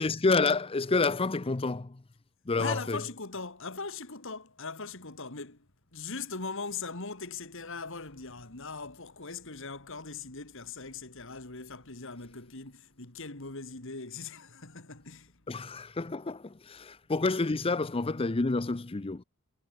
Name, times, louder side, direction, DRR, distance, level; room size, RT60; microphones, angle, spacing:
voice 1, 0.0-2.0 2.5-3.0 15.5-19.2, left 3 dB, 25° left, 0.6 m, -29 dB
voice 2, 2.6-15.4, left 4 dB, 65° left, 2.9 m, -40 dB
head